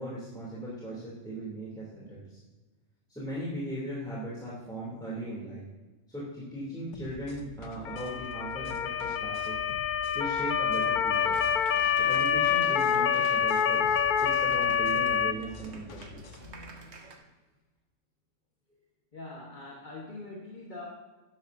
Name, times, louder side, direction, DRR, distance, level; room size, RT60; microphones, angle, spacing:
voice 1, 0.0-2.4 3.1-5.6 6.1-9.5 10.1-11.4 11.9-16.2, right 1 dB, 5° left, -9 dB, 2.9 m, -38 dB
sound 1, 6.9-16.6, left 3 dB, 75° left, 1.2 m, -48 dB
Motor vehicle (road) / Siren, 7.9-15.3, left 8 dB, 60° left, 0.5 m, -27 dB
Applause, 11.1-17.2, right 4 dB, 65° right, 1.4 m, -50 dB
voice 2, 16.4-17.2 19.1-20.9, left 2 dB, 40° left, -3 dB, 1.5 m, -44 dB
12.5 x 10.5 x 2.7 m, 1.2 s
omnidirectional pair, 1.3 m